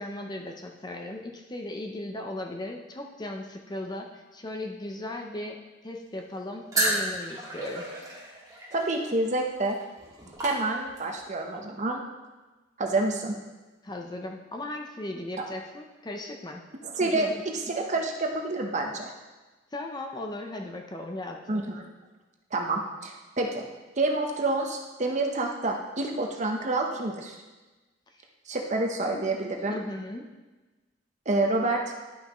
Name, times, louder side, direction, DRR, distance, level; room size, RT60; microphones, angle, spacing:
voice 1, 0.0-5.6 5.8-7.9 13.8-16.6 17.0-17.3 19.7-21.6 29.7-30.3, left 1 dB, 25° left, 2 dB, 0.6 m, -37 dB
sound 1, 6.7-11.2, right 2 dB, 20° right, 1.9 m, -32 dB
voice 2, 8.7-9.8 10.4-12.0 12.8-13.4 16.8-17.3 17.5-19.1 21.5-21.8 22.5-23.6 24.0-27.3 28.5-29.8 31.3-31.8, right 2 dB, 40° right, 2 dB, 0.9 m, -28 dB
11.5 x 5.6 x 3.1 m, 1.2 s
head